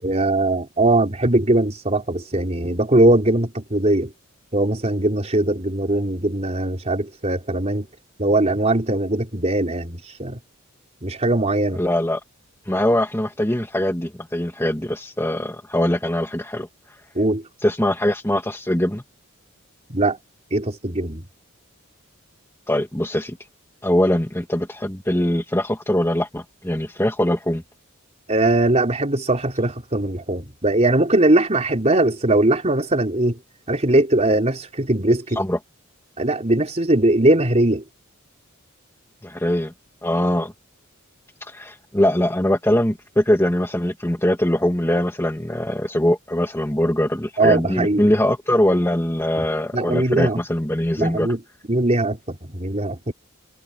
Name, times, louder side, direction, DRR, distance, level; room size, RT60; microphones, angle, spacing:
voice 1, 0.0-4.1 4.5-7.9 8.2-10.4 11.0-11.8 17.1-17.4 19.9-20.2 20.5-21.2 28.3-33.4 33.7-35.4 36.2-37.8 47.4-48.1 49.4-49.5 49.7-50.4 51.0-51.4 51.7-53.1, right 2 dB, 30° right, 4.2 m, -20 dB
voice 2, 11.7-12.2 12.7-16.7 17.6-19.0 22.7-23.4 23.8-27.6 35.4-35.6 39.2-39.7 40.0-40.5 41.5-51.3, left 1 dB, 10° left, 2.0 m, -22 dB
head